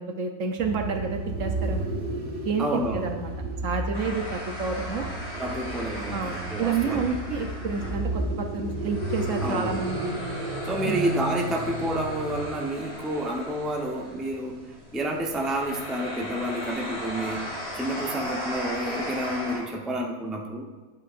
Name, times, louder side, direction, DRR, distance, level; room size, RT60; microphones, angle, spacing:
voice 1, 0.0-1.9 2.4-3.3 3.6-5.1 6.1-10.2 10.8-11.0, right 5 dB, 60° right, 4 dB, 1.0 m, -29 dB
sound 1, 0.6-12.8, right 2 dB, 40° right, 1.3 m, -33 dB
voice 2, 2.6-3.1 5.4-7.1 9.4-9.8 10.6-14.6 14.9-20.7, right 1 dB, ahead, 0 dB, 0.6 m, -29 dB
sound 2, 3.9-19.6, equal, 25° left, 2.6 m, -37 dB
12.5 x 7.6 x 2.5 m, 1.4 s
omnidirectional pair, 1.6 m